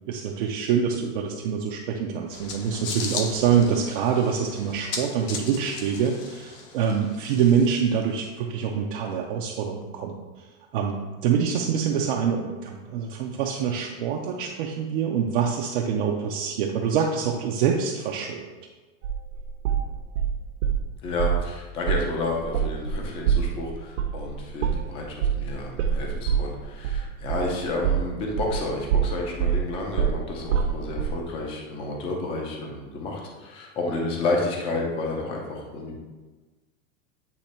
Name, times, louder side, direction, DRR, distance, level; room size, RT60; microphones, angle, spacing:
voice 1, 0.1-10.2 10.7-18.5, right 7 dB, 45° right, 0 dB, 0.5 m, -25 dB
sound 1, 2.3-8.0, left 4 dB, 45° left, 0.9 m, -37 dB
sound 2, 19.0-20.8 21.2-21.5 21.9-22.1 22.4-28.6 28.9-31.2, right 8 dB, 70° right, 0.9 m, -25 dB
voice 2, 21.0-36.0, left 2 dB, 15° left, 0 dB, 0.5 m, -30 dB
8.4 x 3.1 x 4.2 m, 1.2 s
supercardioid pair, 170°, 39 cm